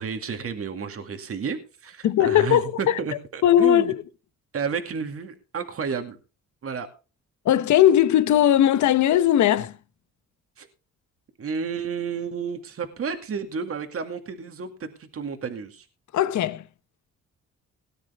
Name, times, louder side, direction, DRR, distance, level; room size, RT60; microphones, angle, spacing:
voice 1, 0.0-3.9 4.5-6.2 6.6-6.9 10.6-10.7 11.4-15.9, right 6 dB, 50° right, 2.2 m, -31 dB
voice 2, 2.0-3.0 3.4-4.0 7.4-9.8 16.1-16.6, left 11 dB, 70° left, 1.1 m, -19 dB
18.5 x 9.5 x 3.5 m
cardioid pair, 90°, 30 cm